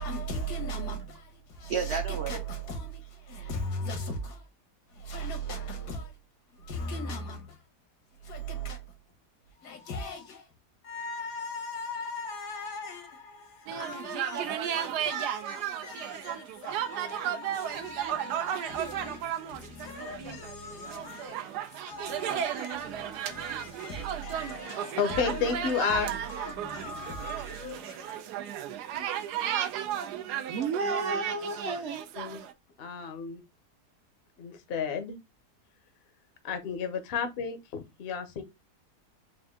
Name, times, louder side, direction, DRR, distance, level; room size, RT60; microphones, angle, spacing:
voice 1, 0.0-4.5 4.9-6.2 6.5-7.6 8.2-8.9 9.5-10.5 10.8-28.2, equal, 85° left, 1.7 m, -39 dB
voice 2, 1.7-2.4 30.5-32.0, right 4 dB, 60° right, 0.7 m, -31 dB
sound 1, 13.7-32.5, right 10 dB, 85° right, 1.2 m, -34 dB
voice 3, 25.0-26.1 32.2-32.4 32.8-33.4 34.4-35.2 36.4-38.4, left 6 dB, 55° left, 0.7 m, -31 dB
4.5 x 2.5 x 3.5 m
omnidirectional pair, 1.7 m